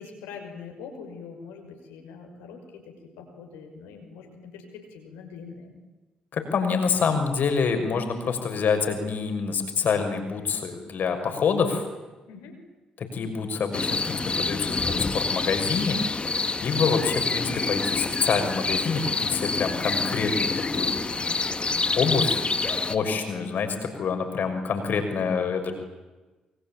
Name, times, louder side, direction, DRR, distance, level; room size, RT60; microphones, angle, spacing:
voice 1, 0.0-2.8 3.2-5.7 12.3-12.5 23.1-23.2, left 5 dB, 75° left, 3 dB, 5.9 m, -43 dB
voice 2, 6.3-11.8 13.0-16.0 16.6-20.9 22.0-22.4 22.9-25.7, left 5 dB, 55° left, 6 dB, 6.2 m, -26 dB
sound 1, 13.7-23.0, left 3 dB, 30° left, 2.2 m, -27 dB
28.0 x 24.0 x 8.9 m, 1.2 s
figure-of-eight pair, 40°, 4 cm